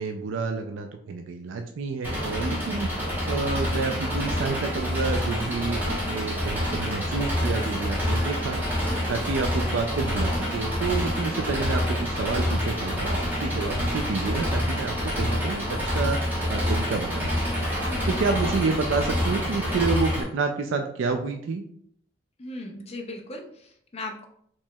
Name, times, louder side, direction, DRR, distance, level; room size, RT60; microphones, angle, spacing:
voice 1, 0.0-2.9 3.3-8.8 9.1-17.7 18.1-21.6, right 4 dB, 80° right, 5 dB, 0.4 m, -29 dB
Engine, 2.0-20.2, left 1 dB, 10° right, 1.0 m, -27 dB
voice 2, 2.5-2.8 8.9-9.2 17.8-18.2 22.4-24.2, left 2 dB, 30° left, 2 dB, 0.5 m, -38 dB
4.4 x 3.0 x 2.2 m, 0.68 s
head